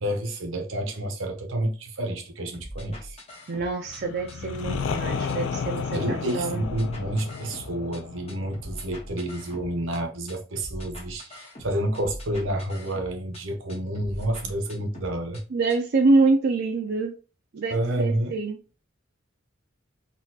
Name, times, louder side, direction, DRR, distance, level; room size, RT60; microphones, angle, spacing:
voice 1, 0.0-3.2 5.9-15.4 17.7-18.3, right 1 dB, 75° right, 0.8 m, -29 dB
sound 1, 2.5-4.0 4.3-6.0 6.3-8.0 8.3-10.0 10.3-13.4 13.7-15.4 15.7-15.8, equal, 30° left, 1.0 m, -42 dB
voice 2, 3.5-6.6 15.5-17.1 17.5-18.6, right 3 dB, 50° right, 0.4 m, -25 dB
sound 2, 3.8-9.6, left 5 dB, 70° left, 0.4 m, -33 dB
3.9 x 2.3 x 2.8 m
head